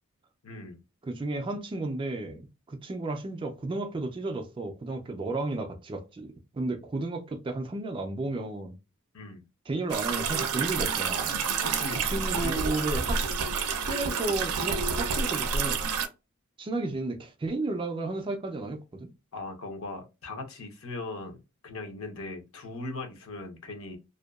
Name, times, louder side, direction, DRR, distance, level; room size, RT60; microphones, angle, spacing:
voice 1, 0.4-0.8 9.1-9.4 11.6-13.0 19.3-21.4 21.6-24.0, left 2 dB, 65° left, 0.8 m, -39 dB
voice 2, 1.0-8.7 9.7-11.5 12.0-13.2 13.9-16.0 16.6-19.1, right 2 dB, 25° right, 0.3 m, -33 dB
sound 1, 9.9-16.1, right 5 dB, 85° right, 0.5 m, -29 dB
2.6 x 2.2 x 2.2 m
head